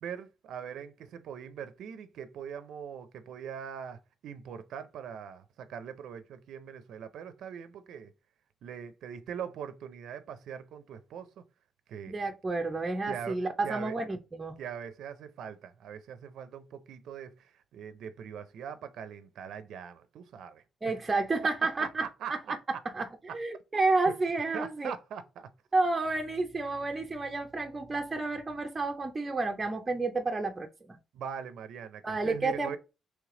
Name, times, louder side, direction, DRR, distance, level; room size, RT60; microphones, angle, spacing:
voice 1, 0.0-8.1 8.6-11.4 11.9-12.1 13.1-14.0 14.6-20.6 21.8-22.8 23.3-23.4 24.5-25.5 31.1-32.8, right 8 dB, 75° right, 0.4 m, -42 dB
voice 2, 12.1-14.6 20.8-22.0 22.3-22.4 22.9-23.1 23.3-24.9 25.7-31.0 32.0-32.8, right 3 dB, 20° right, 0.5 m, -30 dB
3.2 x 3.2 x 3.7 m
cardioid pair, 120°, 0 cm